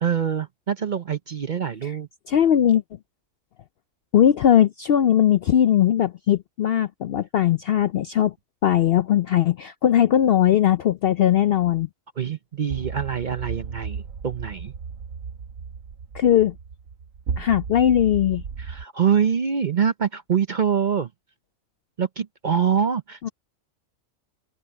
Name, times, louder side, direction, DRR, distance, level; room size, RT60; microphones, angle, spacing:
voice 1, 0.0-2.1 12.2-14.7 18.6-21.1 22.0-23.3, right 7 dB, 45° right, 0.6 m, -24 dB
voice 2, 2.3-2.8 4.1-8.3 8.6-11.9 16.1-16.5 17.4-18.4 23.2-23.3, left 10 dB, 65° left, 0.6 m, -19 dB
sound 1, 12.7-18.9, right 6 dB, 70° right, 1.3 m, -34 dB
open air
omnidirectional pair, 1.4 m